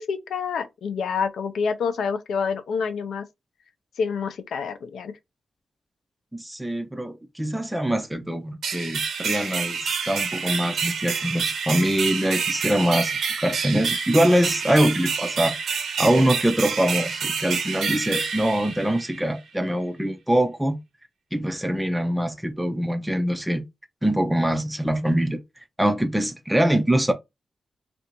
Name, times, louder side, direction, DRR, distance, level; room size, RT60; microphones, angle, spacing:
voice 1, 0.0-3.2 4.0-5.1, left 6 dB, 90° left, 0.6 m, -27 dB
voice 2, 6.3-15.6 16.0-20.8 21.3-23.6 24.0-25.4 25.8-27.1, right 1 dB, 5° right, 0.3 m, -23 dB
sound 1, 8.6-19.3, right 6 dB, 80° right, 0.8 m, -28 dB
3.3 x 2.5 x 2.9 m
wide cardioid pair, 180°, 0 cm